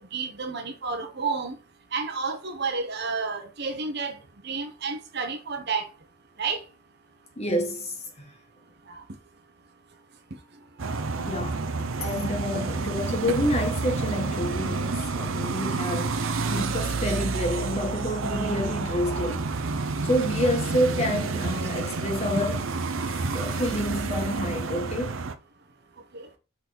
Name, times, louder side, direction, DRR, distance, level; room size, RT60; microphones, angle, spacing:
voice 1, 0.0-1.5 1.9-4.1 4.4-5.8 6.4-6.6 8.9-9.0 26.1-26.2, right 4 dB, 55° right, 1.0 m, -30 dB
voice 2, 7.4-8.3 11.2-19.5 20.0-22.7 23.1-25.2, left 1 dB, 30° left, 1.5 m, -29 dB
sound 1, 10.8-25.4, right 4 dB, 75° right, 0.7 m, -29 dB
6.1 x 4.1 x 5.4 m
head